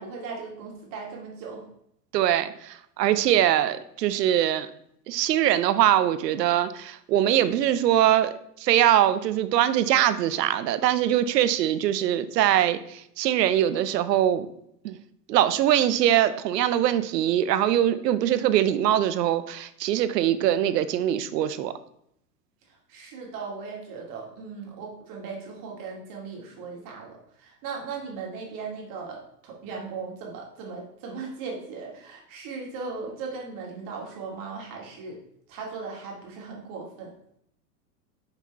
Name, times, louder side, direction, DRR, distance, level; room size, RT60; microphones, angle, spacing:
voice 1, 0.0-1.6 22.7-35.2 35.5-37.1, right 4 dB, 40° right, -1 dB, 2.2 m, -38 dB
voice 2, 2.1-4.7 5.1-8.3 8.6-14.5 14.8-15.0 15.3-21.7, right 11 dB, 80° right, 13 dB, 0.7 m, -22 dB
6.0 x 5.7 x 3.4 m, 0.73 s
hypercardioid pair, 120°, 48 cm